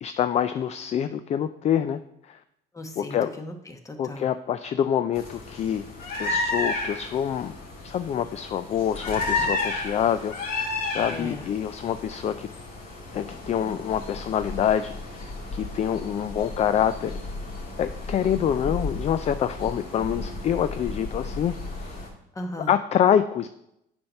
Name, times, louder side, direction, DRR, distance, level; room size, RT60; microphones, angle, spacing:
voice 1, 0.0-2.0 2.3-2.4 3.0-3.3 4.0-5.8 6.2-7.5 7.8-10.4 10.9-12.5 13.1-17.2 17.8-21.9 22.7-23.5, left 9 dB, 40° left, 11 dB, 0.4 m, -26 dB
voice 2, 2.7-4.3 11.1-11.5 22.3-22.7, left 1 dB, 20° left, 5 dB, 1.2 m, -37 dB
sound 1, 5.1-22.1, left 2 dB, 60° left, 2.6 m, -33 dB
8.6 x 4.4 x 5.7 m, 0.78 s
cardioid pair, 110°, 17 cm